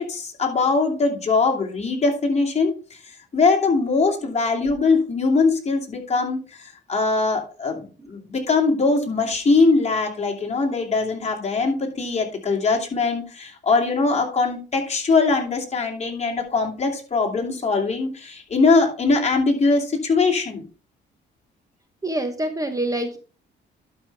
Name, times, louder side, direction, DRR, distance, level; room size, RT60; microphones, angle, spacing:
voice 1, 0.0-20.6, left 3 dB, 35° left, 0 dB, 2.7 m, -21 dB
voice 2, 22.0-23.2, right 1 dB, 15° right, 7 dB, 1.0 m, -26 dB
11.5 x 5.5 x 3.4 m, 0.37 s
cardioid pair, 90°, 20 cm